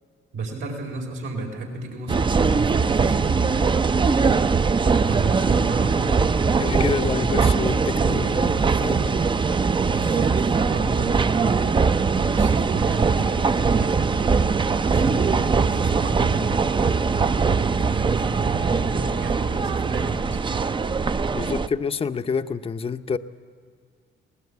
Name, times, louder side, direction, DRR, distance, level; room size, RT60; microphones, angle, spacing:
voice 1, 0.3-4.1 4.9-7.9 9.8-14.2 14.8-20.7, right 3 dB, 85° right, 1 dB, 4.6 m, -32 dB
sound 1, 2.1-21.7, right 5 dB, 25° right, 0.5 m, -21 dB
voice 2, 6.6-9.2 21.3-23.2, left 5 dB, 30° left, 9 dB, 0.7 m, -28 dB
20.5 x 19.5 x 8.5 m, 2.1 s
cardioid pair, 90°, 20 cm